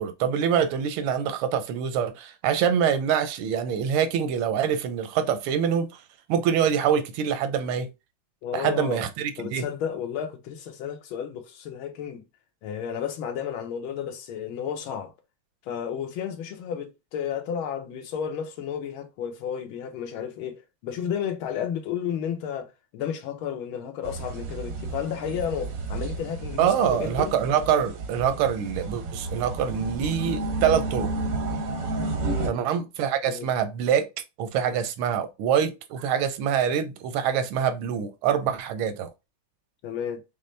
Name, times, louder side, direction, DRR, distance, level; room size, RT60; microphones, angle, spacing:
voice 1, 0.0-5.9 6.3-7.9 8.5-9.6 26.6-31.1 32.5-34.1 34.4-39.1, right 8 dB, 85° right, 1.5 m, -25 dB
voice 2, 8.4-9.0 9.4-12.2 12.6-15.1 15.6-27.3 32.2-32.6 33.2-33.5 39.8-40.2, left 8 dB, 80° left, 1.6 m, -32 dB
sound 1, 24.0-32.5, right 3 dB, 65° right, 0.8 m, -32 dB
5.4 x 2.0 x 3.2 m
omnidirectional pair, 2.3 m